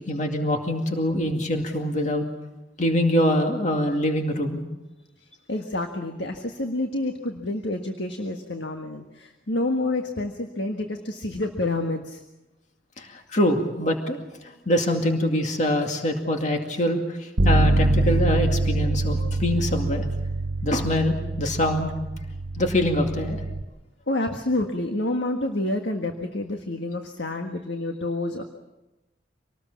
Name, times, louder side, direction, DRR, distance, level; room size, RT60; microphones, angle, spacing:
voice 1, 0.0-2.3 2.8-4.6 13.0-14.2 14.4-20.1 20.6-21.9 22.5-23.4, left 1 dB, 40° left, 3 dB, 2.3 m, -24 dB
voice 2, 5.2-12.2 24.1-28.4, left 2 dB, 65° left, 4 dB, 1.6 m, -28 dB
Bass guitar, 17.4-23.6, right 2 dB, 75° right, 1.4 m, -24 dB
26.0 x 19.0 x 7.4 m, 1.0 s
head